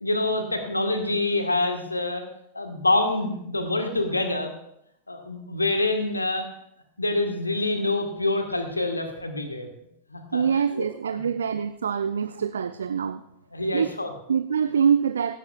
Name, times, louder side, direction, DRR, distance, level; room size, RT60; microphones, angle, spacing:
voice 1, 0.0-2.2 2.5-4.5 5.1-6.4 7.0-9.7 10.1-10.9 11.1-11.2 13.5-14.1, left 2 dB, 80° left, 6 dB, 1.5 m, -26 dB
voice 2, 10.3-13.2 13.7-13.9 14.3-15.4, right 7 dB, 70° right, 12 dB, 0.4 m, -24 dB
16.0 x 13.5 x 2.4 m, 0.77 s
figure-of-eight pair, 90°, 0 cm